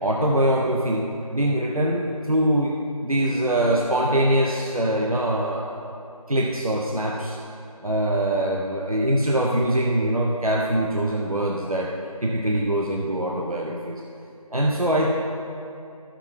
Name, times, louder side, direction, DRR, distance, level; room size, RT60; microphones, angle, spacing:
voice 1, 0.0-5.9 6.3-7.4 7.8-11.9 12.2-14.0 14.5-15.1, right 1 dB, 65° right, -1 dB, 1.0 m, -23 dB
12.5 x 6.6 x 4.7 m, 2.6 s
figure-of-eight pair, 175°, 19 cm